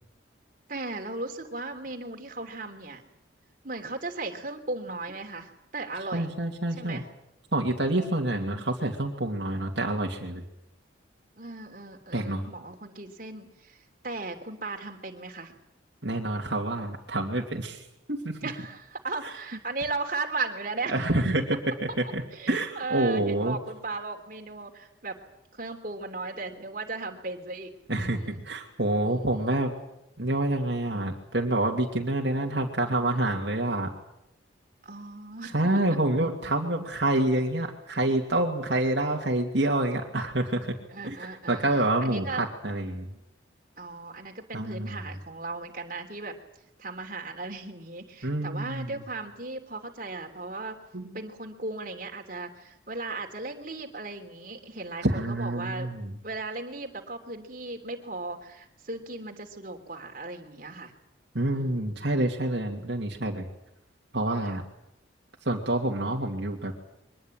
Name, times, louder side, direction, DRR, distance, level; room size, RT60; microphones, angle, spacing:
voice 1, 0.7-3.0 3.6-6.3 6.8-7.1 8.3-8.6 11.4-15.5 18.4-21.1 22.3-25.2 25.5-27.7 28.0-28.4 29.0-29.6 34.8-35.8 40.9-41.7 42.0-42.4 43.8-46.3 46.8-50.8 51.1-55.9 56.2-60.9 61.5-62.0 64.4-64.6, right 3 dB, 45° right, 3 dB, 3.2 m, -37 dB
voice 2, 6.1-7.0 7.5-10.4 12.1-12.4 16.0-18.4 20.9-21.6 22.0-22.2 22.5-23.6 27.9-29.7 30.2-33.9 35.5-40.7 41.0-43.1 44.5-44.9 48.2-49.0 50.9-51.1 55.0-56.1 61.3-63.5 64.1-64.6 65.4-66.7, right 1 dB, 60° right, 0 dB, 2.7 m, -27 dB
24.0 x 20.5 x 9.1 m, 0.82 s
head